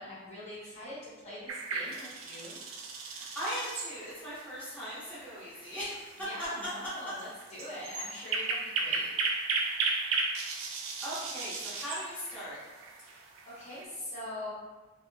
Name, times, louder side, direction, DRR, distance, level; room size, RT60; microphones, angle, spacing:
voice 1, 0.0-2.6 6.2-9.1 13.0-14.5, left 1 dB, 35° left, -9 dB, 0.9 m, -43 dB
sound 1, 1.5-13.8, right 3 dB, 80° right, 0.3 m, -36 dB
voice 2, 3.1-6.5 11.0-12.6, equal, 5° left, -12 dB, 0.8 m, -39 dB
2.6 x 2.0 x 2.6 m, 1.3 s
head